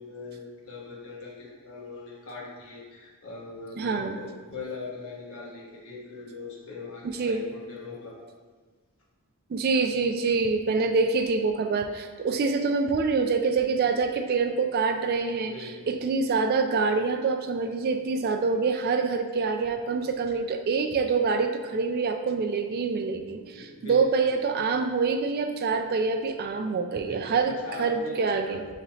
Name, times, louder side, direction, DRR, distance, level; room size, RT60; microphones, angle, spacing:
voice 1, 0.0-8.3 15.4-16.0 23.5-24.3 27.0-28.8, left 3 dB, 65° left, -4 dB, 1.1 m, -41 dB
voice 2, 3.8-4.2 7.0-7.4 9.5-28.6, right 4 dB, 45° right, 6 dB, 0.3 m, -26 dB
6.5 x 3.0 x 2.7 m, 1.4 s
head